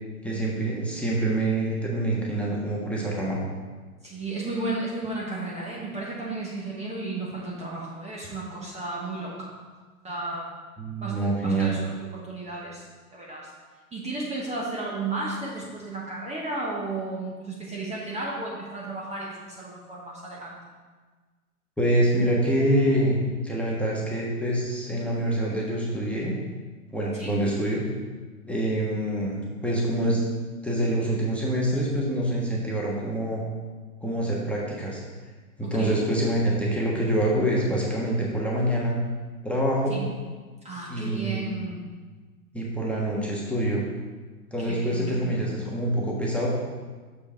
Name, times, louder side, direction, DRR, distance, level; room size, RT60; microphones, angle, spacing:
voice 1, 0.2-3.4 10.8-11.8 21.8-26.3 26.9-27.8 28.5-30.2 30.6-33.4 34.0-35.0 35.6-39.0 39.4-40.0 40.9-41.6 42.5-43.8 44.5-46.5, right 1 dB, 5° left, -5 dB, 1.3 m, -26 dB
voice 2, 4.0-9.5 10.0-10.5 11.0-12.9 13.1-13.5 13.9-20.6 27.1-27.4 35.6-36.0 39.9-40.1 40.6-41.9 44.6-45.5, right 2 dB, 15° right, -4 dB, 1.2 m, -33 dB
6.9 x 5.3 x 4.6 m, 1.4 s
hypercardioid pair, 105°, 44 cm